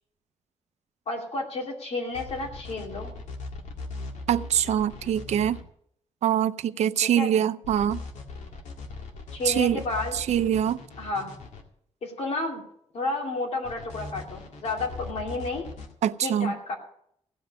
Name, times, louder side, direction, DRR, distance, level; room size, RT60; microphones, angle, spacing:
voice 1, 1.1-3.1 7.0-7.3 9.3-10.1 11.0-11.3 12.0-12.6 12.9-15.7 16.2-16.7, left 2 dB, 65° left, 0 dB, 2.7 m, -31 dB
sound 1, 2.1-5.6 7.6-11.6 13.6-15.9, left 3 dB, 85° left, 2.1 m, -39 dB
voice 2, 4.3-5.6 6.2-8.0 9.4-9.8 10.1-10.8 16.0-16.6, right 10 dB, 70° right, 14 dB, 0.6 m, -24 dB
16.5 x 5.5 x 9.7 m, 0.70 s
wide cardioid pair, 170°, 12 cm